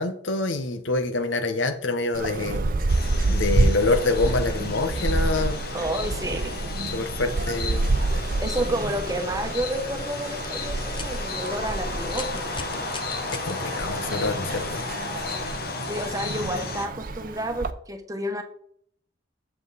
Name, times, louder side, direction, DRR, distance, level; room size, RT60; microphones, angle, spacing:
voice 1, 0.0-2.6 3.3-5.6 6.9-7.9 13.4-14.8, left 3 dB, 85° left, 8 dB, 1.0 m, -26 dB
sound 1, 2.1-17.7, right 2 dB, 50° right, 0.6 m, -28 dB
sound 2, 2.9-16.9, left 4 dB, 55° left, 1.0 m, -34 dB
voice 2, 5.7-6.6 8.4-12.6 15.9-18.4, right 1 dB, 20° right, 6 dB, 1.0 m, -30 dB
sound 3, 10.4-10.5 10.9-11.1 11.4-11.5 12.1-13.5 14.7-14.8 15.6-15.7, left 5 dB, 25° left, 0.7 m, -38 dB
7.8 x 7.3 x 4.1 m, 0.63 s
head